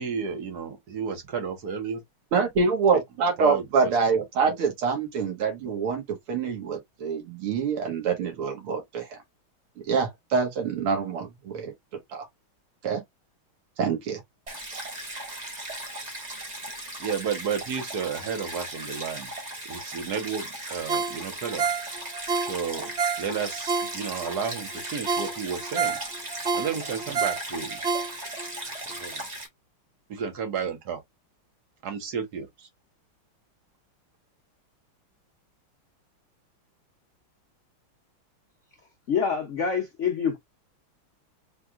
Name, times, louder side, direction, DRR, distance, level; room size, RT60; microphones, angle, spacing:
voice 1, 0.0-2.0 3.4-3.9 4.4-4.5 17.0-19.3 19.7-21.7 22.4-22.9 23.2-26.0 26.5-27.8 28.9-29.2 30.1-31.0 31.8-32.7, right 6 dB, 50° right, 1.6 m, -32 dB
voice 2, 2.3-9.2 9.9-11.7 12.1-12.3 12.8-13.0 13.8-14.2, right 5 dB, 85° right, 2.4 m, -26 dB
Stream, 14.5-29.5, right 1 dB, 25° right, 1.2 m, -37 dB
Ringtone, 20.9-24.3 24.7-24.8 25.1-28.5 28.9-29.0, right 5 dB, 70° right, 0.6 m, -29 dB
voice 3, 39.1-40.4, left 6 dB, 65° left, 0.7 m, -26 dB
4.7 x 3.6 x 2.4 m
omnidirectional pair, 2.3 m